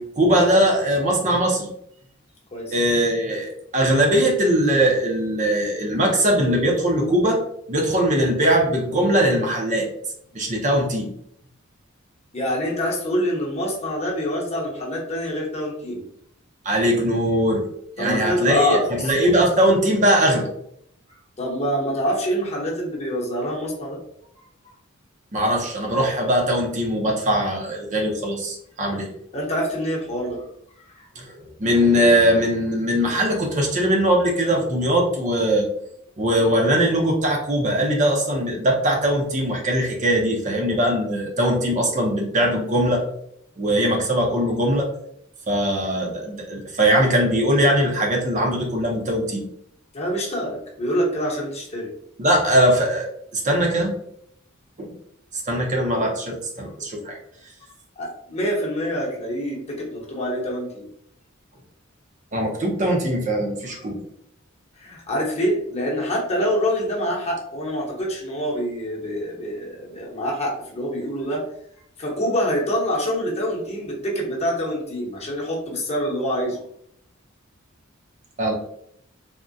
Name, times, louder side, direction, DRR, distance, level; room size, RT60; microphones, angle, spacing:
voice 1, 0.2-1.7 2.7-7.4 7.7-9.9 10.3-11.1 16.6-17.6 18.0-20.5 25.3-29.1 31.2-35.6 36.2-43.0 43.6-44.9 45.5-49.4 52.2-53.9 54.8-54.9 55.3-57.2 62.3-64.0 78.4-78.5, equal, 35° right, 1 dB, 0.6 m, -20 dB
voice 2, 12.3-16.0 18.0-19.1 21.4-24.0 29.3-30.4 30.8-31.1 49.9-51.9 58.0-60.9 63.8-63.9 64.8-71.4 72.0-76.6, equal, 30° left, -2 dB, 0.8 m, -26 dB
3.5 x 2.1 x 2.5 m, 0.70 s
head